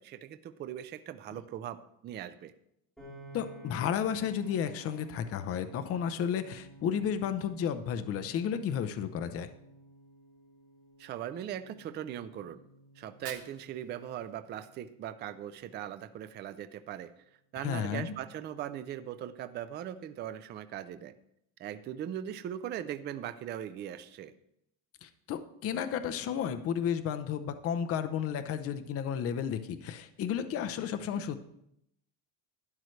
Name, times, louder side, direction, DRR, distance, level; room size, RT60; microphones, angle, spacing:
voice 1, 0.0-2.5 11.0-12.6 13.0-17.1 17.5-21.1 21.6-24.3, right 10 dB, 25° right, 11 dB, 0.3 m, -40 dB
Piano, 3.0-15.2, right 1 dB, ahead, 3.6 m, -54 dB
voice 2, 3.3-9.5 17.5-18.1 25.0-31.4, left 8 dB, 35° left, 10 dB, 0.6 m, -32 dB
Fire, 12.9-14.9, right 8 dB, 45° right, 1.3 m, -51 dB
12.0 x 10.5 x 3.2 m, 0.77 s
cardioid pair, 160°, 42 cm